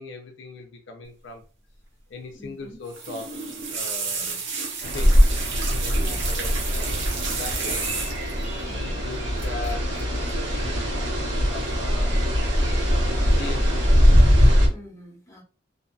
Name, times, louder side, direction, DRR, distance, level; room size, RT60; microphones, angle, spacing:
voice 1, 0.0-1.4 2.1-3.3 3.7-4.4 4.9-5.2 5.8-7.8 8.7-11.0 11.5-12.2 13.3-13.8, left 3 dB, 70° left, 3 dB, 0.5 m, -39 dB
voice 2, 2.3-2.8 4.1-4.4 5.9-6.3 8.6-9.0 14.7-15.4, equal, 20° left, -3 dB, 1.0 m, -45 dB
sound 1, 2.9-8.4 9.4-9.7 10.0-10.3 11.5-12.0 12.4-12.9 13.4-13.8 14.2-14.3, right 4 dB, 85° right, 0.8 m, -32 dB
sound 2, 4.8-14.7, equal, 70° right, 1.1 m, -21 dB
2.6 x 2.6 x 2.3 m, 0.38 s
head